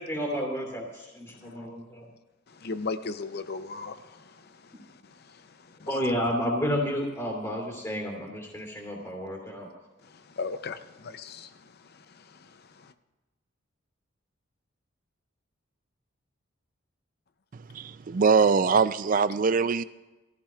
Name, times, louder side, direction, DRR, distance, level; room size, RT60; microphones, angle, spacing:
voice 1, 0.0-2.1 5.9-9.7, equal, 15° left, 2.7 m, -31 dB
voice 2, 2.5-5.9 10.0-12.9, left 4 dB, 50° left, 0.6 m, -39 dB
voice 3, 17.5-19.8, right 5 dB, 40° right, 0.4 m, -23 dB
20.5 x 14.5 x 2.4 m
head